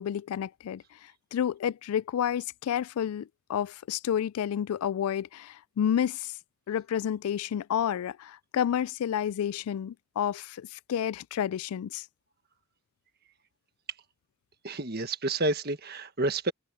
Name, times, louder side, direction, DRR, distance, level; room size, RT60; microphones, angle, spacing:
voice 1, 0.0-6.3 6.7-12.0, left 9 dB, 80° left, 0.3 m, -30 dB
voice 2, 14.6-16.5, right 2 dB, 45° right, 1.5 m, -29 dB
head